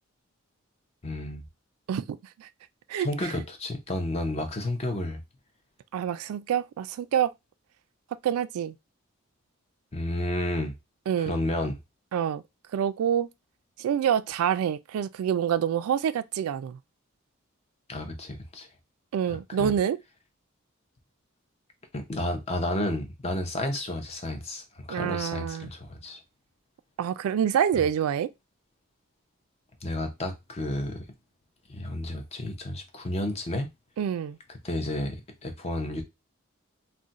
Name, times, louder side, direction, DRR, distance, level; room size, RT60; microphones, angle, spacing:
voice 1, 1.0-1.4 3.0-5.2 9.9-10.7 11.2-11.8 17.9-18.7 19.6-19.7 21.9-26.2 29.8-31.0 31.7-33.7 34.6-36.0, left 1 dB, 30° left, 0.5 m, -31 dB
voice 2, 1.9-2.5 2.9-3.3 5.9-7.3 8.2-8.7 11.1-11.4 12.1-12.4 12.7-13.3 13.8-16.8 19.1-20.0 24.9-25.7 27.0-28.3 34.0-34.4, right 9 dB, 90° right, 0.3 m, -27 dB
2.4 x 2.1 x 3.9 m
head